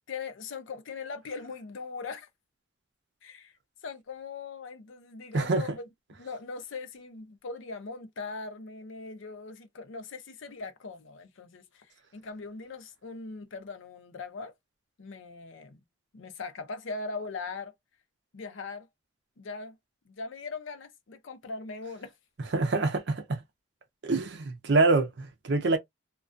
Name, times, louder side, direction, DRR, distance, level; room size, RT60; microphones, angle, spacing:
voice 1, 0.1-2.3 3.2-3.5 3.8-5.8 6.2-11.9 12.1-14.5 15.0-15.8 16.1-17.7 18.3-18.9 19.4-19.8 20.1-22.1, left 4 dB, 80° left, 0.5 m, -40 dB
voice 2, 5.3-5.7 22.5-23.4 24.0-25.8, right 3 dB, 60° right, 0.5 m, -25 dB
2.2 x 2.2 x 2.4 m
head